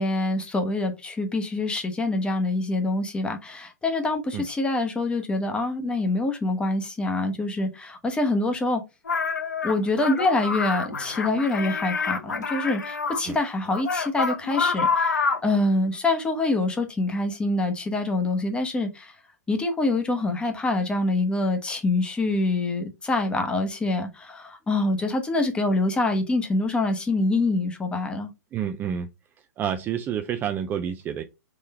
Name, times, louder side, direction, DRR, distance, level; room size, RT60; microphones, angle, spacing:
voice 1, 0.0-8.8 9.6-19.1 19.5-28.3, left 2 dB, 10° left, 0.9 m, -25 dB
sound 1, 9.1-13.2 13.7-15.5, left 5 dB, 90° left, 0.8 m, -27 dB
voice 2, 28.5-29.1 29.6-31.2, right 9 dB, 20° right, 0.3 m, -29 dB
3.8 x 3.1 x 4.3 m
hypercardioid pair, 120°, 9 cm